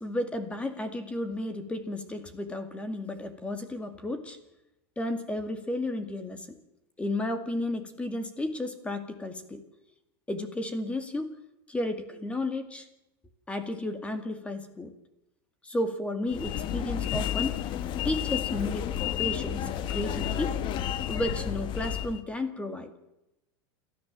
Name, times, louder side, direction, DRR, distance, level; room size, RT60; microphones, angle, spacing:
voice 1, 0.0-4.4 5.0-6.5 7.0-9.6 10.3-11.4 11.7-12.9 13.5-14.9 15.6-17.6 18.0-20.6 21.1-22.9, left 1 dB, 10° left, 8 dB, 2.2 m, -33 dB
sound 1, 16.3-22.2, left 10 dB, 35° left, 1.2 m, -31 dB
28.5 x 13.5 x 7.5 m, 0.89 s
supercardioid pair, 150°, 14 cm